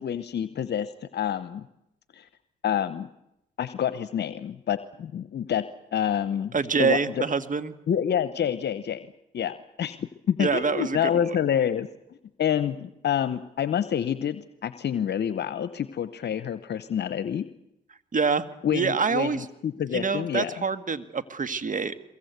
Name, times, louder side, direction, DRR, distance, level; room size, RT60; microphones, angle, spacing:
voice 1, 0.0-1.6 2.1-2.3 2.6-3.1 3.6-5.6 5.9-6.5 6.8-7.2 7.9-9.1 9.3-11.9 12.4-17.5 18.6-20.5, left 9 dB, 65° left, 13 dB, 0.9 m, -27 dB
voice 2, 6.5-7.7 10.4-11.4 18.1-19.4 19.9-21.9, right 5 dB, 45° right, 12 dB, 1.7 m, -26 dB
23.5 x 22.0 x 8.2 m, 0.85 s
supercardioid pair, 50°, 19 cm